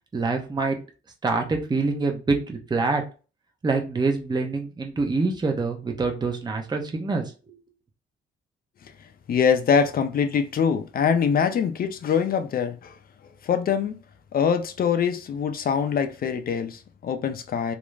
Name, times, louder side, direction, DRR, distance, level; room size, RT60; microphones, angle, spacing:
voice 1, 0.1-0.8 1.2-3.0 3.6-7.2, right 3 dB, 20° right, 0.6 m, -25 dB
voice 2, 9.3-13.0 13.4-13.9 14.3-17.7, left 7 dB, 50° left, 0.5 m, -23 dB
2.4 x 2.0 x 3.2 m
cardioid pair, 90°, 20 cm